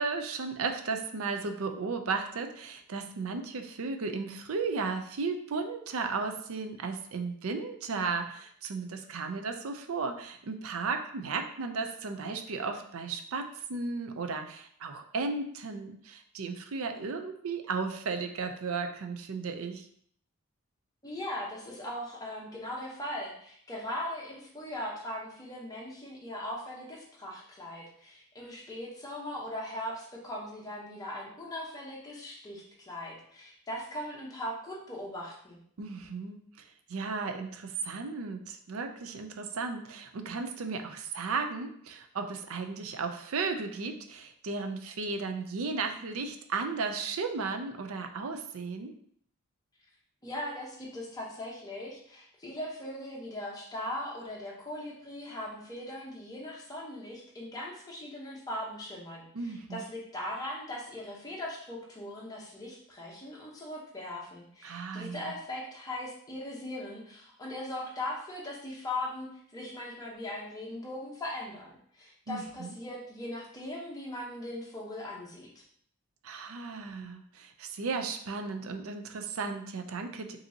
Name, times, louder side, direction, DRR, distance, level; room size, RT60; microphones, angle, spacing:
voice 1, 0.0-19.9 35.8-48.9 59.3-59.9 64.6-65.3 72.3-72.7 76.2-80.4, right 4 dB, 65° right, 6 dB, 0.5 m, -35 dB
voice 2, 21.0-35.6 50.2-75.6, left 1 dB, 15° left, -4 dB, 0.9 m, -39 dB
5.1 x 2.7 x 2.8 m, 0.64 s
head